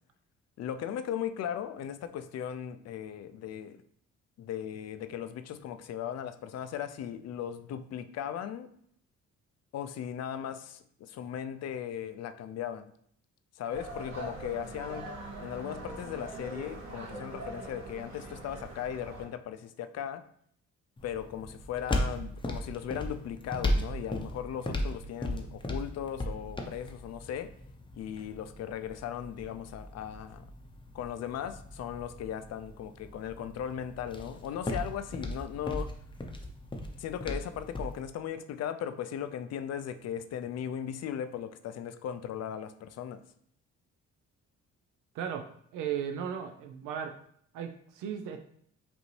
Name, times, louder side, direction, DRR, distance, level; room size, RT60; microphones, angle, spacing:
voice 1, 0.6-3.8 4.4-8.7 9.7-12.9 13.6-15.1 15.4-20.2 21.0-27.5 27.9-30.5 30.9-35.9 37.0-43.2, left 9 dB, 60° left, 10 dB, 0.4 m, -37 dB
sound 1, 13.7-19.3, right 2 dB, 65° right, 1.0 m, -42 dB
sound 2, 21.0-38.0, left 1 dB, 15° left, 0.6 m, -37 dB
voice 2, 45.1-45.5 45.7-47.2 47.5-48.4, right 8 dB, 85° right, 6 dB, 0.5 m, -36 dB
5.1 x 2.7 x 3.1 m, 0.65 s
cardioid pair, 90°, 30 cm